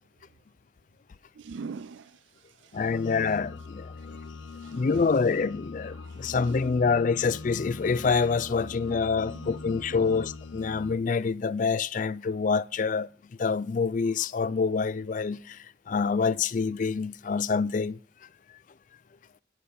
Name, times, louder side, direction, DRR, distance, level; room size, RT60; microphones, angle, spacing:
voice 1, 1.4-2.8 4.5-4.8 6.0-6.5 9.3-9.5, right 5 dB, 70° right, 0.4 m, -43 dB
sound 1, 2.7-11.0, left 3 dB, 75° left, 0.7 m, -41 dB
voice 2, 2.7-4.2 4.7-13.1 13.4-18.0, left 5 dB, 40° left, 0.4 m, -26 dB
10.0 x 5.9 x 6.8 m
head